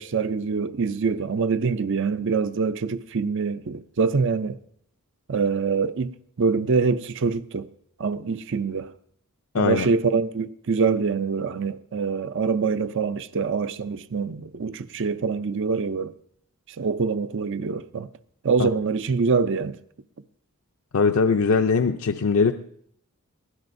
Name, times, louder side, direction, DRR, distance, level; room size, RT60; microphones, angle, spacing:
voice 1, 0.0-4.6 5.3-7.7 8.0-8.9 9.6-16.1 16.8-18.1 18.4-19.8, right 5 dB, 55° right, 0.5 m, -25 dB
voice 2, 9.5-9.9 18.6-18.7 20.9-22.5, left 4 dB, 65° left, 0.5 m, -21 dB
22.5 x 16.0 x 2.6 m
head